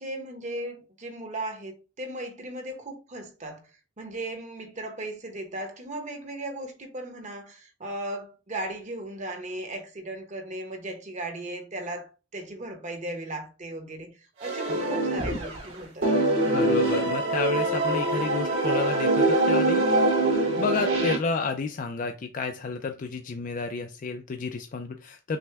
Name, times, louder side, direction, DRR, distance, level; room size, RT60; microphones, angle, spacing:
voice 1, 0.0-3.6 4.0-16.5, right 1 dB, 40° right, 1.0 m, -37 dB
sound 1, 14.4-15.7 16.0-21.2, right 2 dB, 75° right, 2.4 m, -24 dB
voice 2, 16.5-19.9 20.6-25.4, left 4 dB, 40° left, 0.4 m, -31 dB
6.1 x 2.2 x 3.3 m
head